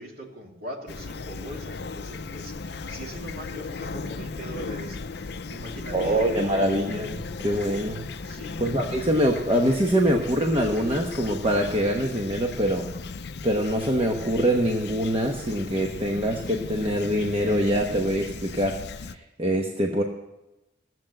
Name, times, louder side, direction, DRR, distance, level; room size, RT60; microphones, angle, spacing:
voice 1, 0.0-6.7 8.2-8.6, right 1 dB, 50° right, 0 dB, 2.8 m, -41 dB
Fowl / Chirp tweet, 0.9-19.2, left 4 dB, 60° left, 0.6 m, -37 dB
voice 2, 5.9-8.0 8.6-12.8 13.4-20.0, equal, 30° right, 1 dB, 1.0 m, -24 dB
15.5 x 7.8 x 8.8 m, 0.98 s
head